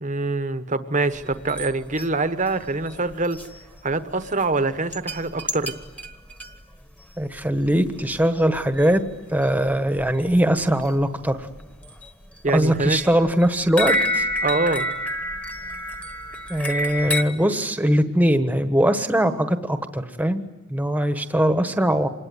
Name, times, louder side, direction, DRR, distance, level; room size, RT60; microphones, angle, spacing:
voice 1, 0.0-3.4 3.8-5.7 12.4-13.0 14.4-14.9, right 3 dB, 35° right, 11 dB, 1.2 m, -24 dB
sound 1, 1.1-1.7 2.0-2.1 2.5-2.6 2.8-3.5 3.9-4.0 4.2-4.4 4.9-6.6 7.4-7.5 7.7-7.9 8.1-8.2 8.6-8.8 9.1-9.2 9.4-10.4 10.8-10.9 11.3-12.1 12.5-17.2, equal, 5° left, 1.5 m, -28 dB
voice 2, 7.2-9.0 9.3-11.5 12.5-14.3 16.5-20.4 20.7-22.1, equal, 10° right, 8 dB, 1.3 m, -21 dB
26.5 x 20.5 x 9.6 m, 1.2 s
head